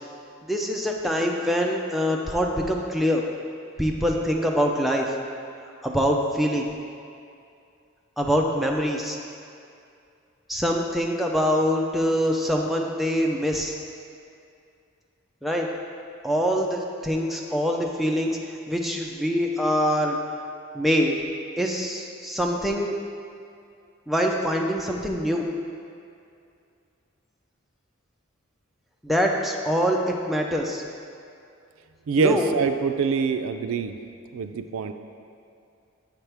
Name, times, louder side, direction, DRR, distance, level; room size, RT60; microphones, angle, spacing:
voice 1, 0.5-3.2 3.8-5.1 5.8-6.7 8.2-9.2 10.5-13.7 15.4-15.7 16.2-20.2 20.7-21.2 21.6-22.9 24.1-25.5 29.0-30.8 32.2-32.5, equal, ahead, 0 dB, 0.4 m, -24 dB
voice 2, 32.1-33.9 34.3-34.9, right 5 dB, 85° right, 8 dB, 0.3 m, -24 dB
7.0 x 5.9 x 3.4 m, 2.5 s
head